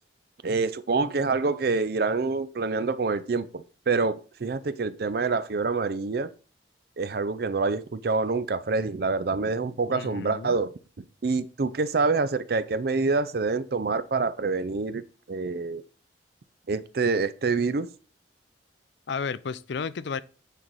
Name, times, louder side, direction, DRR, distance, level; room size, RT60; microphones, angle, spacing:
voice 1, 0.4-6.3 7.0-10.7 11.0-15.8 16.7-17.9, right 4 dB, 55° right, 0.5 m, -26 dB
voice 2, 9.9-10.5 19.1-20.2, left 5 dB, 70° left, 0.4 m, -32 dB
9.1 x 4.7 x 4.0 m
head